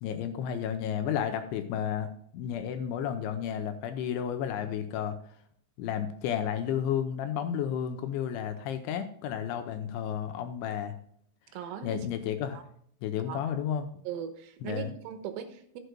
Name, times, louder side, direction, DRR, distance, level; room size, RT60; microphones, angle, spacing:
voice 1, 0.0-5.2 5.8-11.0 11.8-12.6 13.0-13.9 14.6-14.9, left 9 dB, 80° left, 7 dB, 2.9 m, -32 dB
voice 2, 11.5-12.1 12.5-12.6 13.3-13.6 14.1-15.8, right 8 dB, 80° right, 7 dB, 3.5 m, -39 dB
14.5 x 7.9 x 2.3 m, 0.64 s
omnidirectional pair, 5.7 m